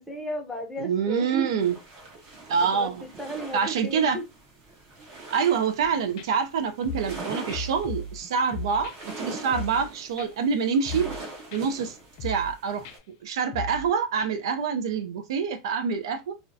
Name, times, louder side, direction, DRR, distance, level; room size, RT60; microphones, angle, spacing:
voice 1, 0.0-1.5 2.7-2.9 3.2-4.2, right 1 dB, 5° left, 0.7 m, -34 dB
voice 2, 0.8-1.8 2.5-3.0 3.5-4.2 5.3-11.1 11.5-12.9 13.2-16.3, right 6 dB, 80° right, 0.5 m, -26 dB
sound 1, 1.6-13.0, right 3 dB, 45° right, 1.0 m, -42 dB
sound 2, 5.8-5.9 6.2-6.3 6.8-7.2 7.5-8.2 8.5-9.0 9.5-9.9 10.2-10.3 10.8-11.2 11.5-11.6 12.2-12.5 12.8-13.0 13.5-13.9 14.2-14.3, left 2 dB, 55° left, 0.5 m, -36 dB
2.4 x 2.1 x 2.6 m
supercardioid pair, 140°, 3 cm